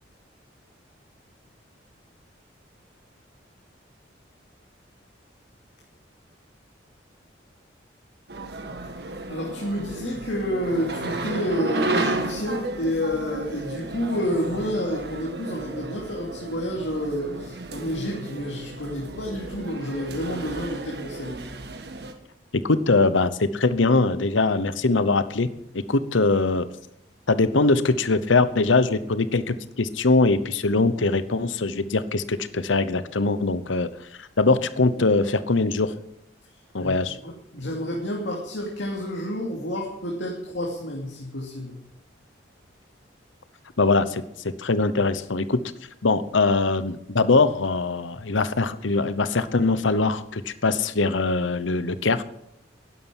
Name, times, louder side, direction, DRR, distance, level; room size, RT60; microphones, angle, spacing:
sound 1, 8.3-22.1, right 2 dB, 55° right, 1.7 m, -33 dB
voice 1, 9.3-21.4 36.8-36.9 37.2-41.7, equal, 75° left, -1 dB, 2.7 m, -29 dB
voice 2, 22.5-26.7 27.3-33.9 34.2-35.9 36.7-37.2 43.8-44.2 44.6-45.6 46.0-52.2, left 3 dB, 90° left, 13 dB, 0.9 m, -22 dB
11.5 x 11.5 x 9.8 m, 0.79 s
head